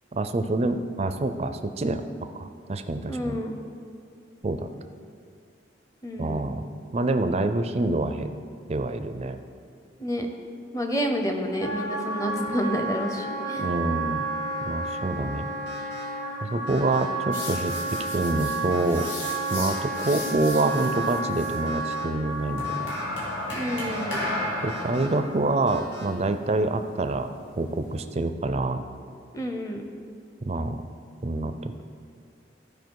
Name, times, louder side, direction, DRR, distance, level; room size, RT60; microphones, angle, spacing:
voice 1, 0.1-3.4 4.4-4.7 6.2-6.6 6.9-8.3 8.7-9.4 13.6-14.3 14.7-15.5 16.4-19.1 19.5-22.8 24.6-28.8 30.5-30.8 31.2-31.8, right 2 dB, 35° right, 9 dB, 0.4 m, -27 dB
voice 2, 3.1-3.6 6.0-6.5 10.0-10.3 10.7-13.7 23.5-24.3 29.3-29.8, equal, 20° left, 4 dB, 0.8 m, -29 dB
Wind instrument woodwind instrument, 11.6-22.9, right 2 dB, 40° left, 1.7 m, -31 dB
sound 1, 15.7-16.0 16.7-17.0 17.7-18.0 18.7-19.1 19.7-20.1 20.7-21.1 21.7-22.0 22.6-23.0 23.7-24.0 24.7-25.1 25.7-26.0, left 1 dB, 70° left, 1.8 m, -44 dB
sound 2, 17.3-21.6 22.6-28.0, left 1 dB, 85° left, 2.5 m, -35 dB
14.0 x 4.9 x 4.7 m, 2.2 s
head